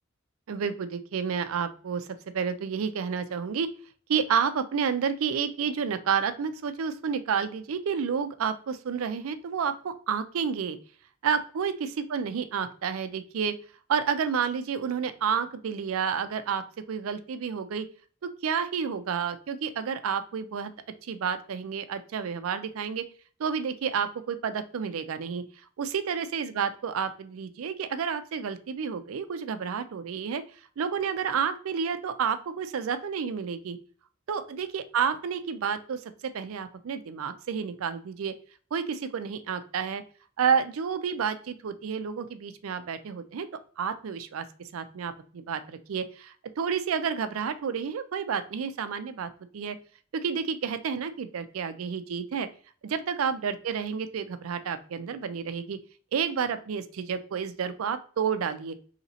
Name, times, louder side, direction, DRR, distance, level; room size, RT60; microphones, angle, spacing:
voice 1, 0.5-3.7 4.1-10.8 11.2-13.6 13.9-17.9 18.2-20.7 21.0-23.0 23.4-25.4 25.8-30.4 30.8-33.8 34.3-38.3 38.7-40.0 40.4-43.5 43.8-44.4 44.7-49.8 50.1-52.5 52.8-55.8 56.1-58.8, right 6 dB, 85° right, 11 dB, 0.4 m, -30 dB
4.0 x 2.8 x 2.8 m, 0.43 s
head